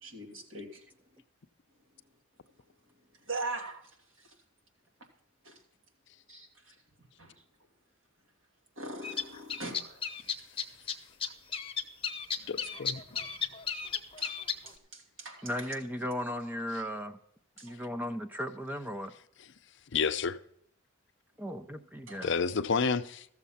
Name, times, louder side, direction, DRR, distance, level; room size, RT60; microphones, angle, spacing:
voice 1, 0.0-0.9 3.2-3.8 4.2-4.3 5.4-5.6 6.3-6.8 7.2-7.4 8.8-10.2 12.4-12.7 14.2-15.7 17.6-17.8 22.1-22.3, right 2 dB, 70° right, 2.7 m, -42 dB
sound 1, 9.0-10.9 11.2-14.7, left 7 dB, 25° left, 0.9 m, -34 dB
voice 2, 12.5-13.0 19.9-20.4 22.2-23.3, left 5 dB, 55° left, 0.5 m, -29 dB
voice 3, 15.4-17.2 17.6-19.1 21.4-22.3, equal, 10° right, 0.4 m, -36 dB
14.0 x 7.2 x 5.6 m
head